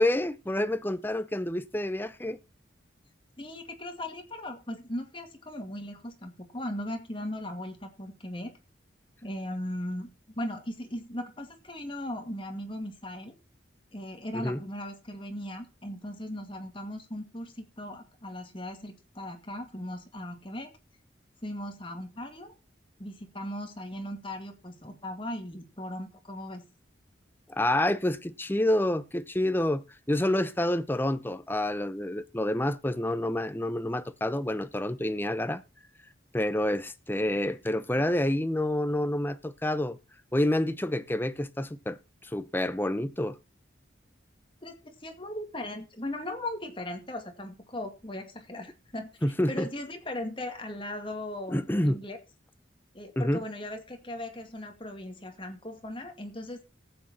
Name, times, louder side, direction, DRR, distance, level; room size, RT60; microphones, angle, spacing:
voice 1, 0.0-2.4 14.3-14.6 27.5-35.6 36.3-40.0 40.3-43.4 49.2-49.7 51.5-52.0 53.2-53.4, left 1 dB, 10° left, 0.7 m, -28 dB
voice 2, 3.4-8.5 9.2-10.1 10.4-13.3 13.9-20.7 21.4-22.5 23.0-26.6 44.6-49.1 49.5-52.2 52.9-56.7, left 1 dB, 25° left, 2.2 m, -38 dB
14.5 x 8.8 x 4.3 m
head